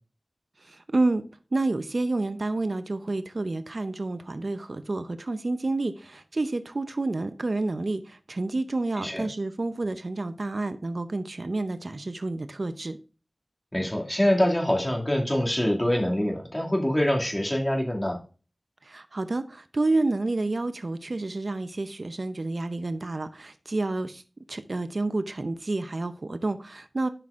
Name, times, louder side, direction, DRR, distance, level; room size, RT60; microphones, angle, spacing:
voice 1, 0.6-1.2 1.5-13.0 18.8-24.2 24.5-27.1, right 2 dB, 60° right, 0.6 m, -29 dB
voice 2, 13.7-18.2, left 1 dB, 20° left, 2.3 m, -25 dB
11.0 x 6.0 x 2.5 m
wide cardioid pair, 45°, 0 cm